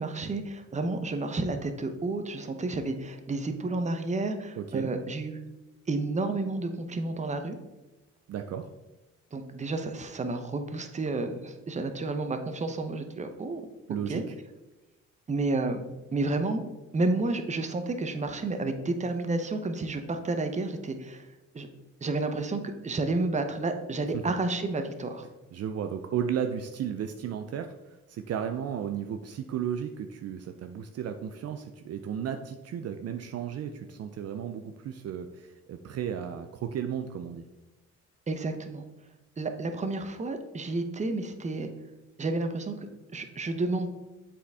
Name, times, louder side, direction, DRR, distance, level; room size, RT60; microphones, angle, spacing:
voice 1, 0.0-5.4 5.9-7.6 9.3-13.6 14.1-14.2 15.3-15.8 16.1-16.6 16.9-21.2 21.5-21.7 22.0-25.3 38.3-38.8 39.4-41.7 42.2-42.7 43.1-43.9, right 2 dB, 25° right, 7 dB, 0.7 m, -31 dB
voice 2, 4.6-4.9 8.3-8.7 13.9-14.2 24.1-24.2 25.5-37.4, right 8 dB, 55° right, 6 dB, 0.5 m, -34 dB
7.5 x 4.2 x 3.5 m, 1.0 s
cardioid pair, 90°, 30 cm